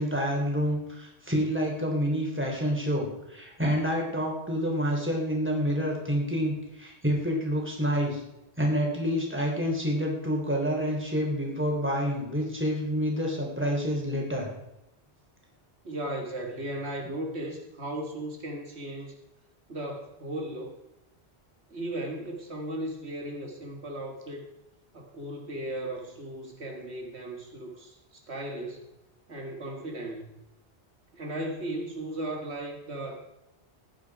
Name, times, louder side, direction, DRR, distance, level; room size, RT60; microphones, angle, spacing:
voice 1, 0.0-8.2 8.6-14.5, equal, 10° right, -1 dB, 3.4 m, -28 dB
voice 2, 15.8-19.2 19.7-20.8 21.7-24.5 24.9-28.9 29.3-30.3 31.1-33.2, right 1 dB, 75° right, 2 dB, 2.1 m, -36 dB
15.5 x 10.5 x 4.7 m, 0.89 s
omnidirectional pair, 1.1 m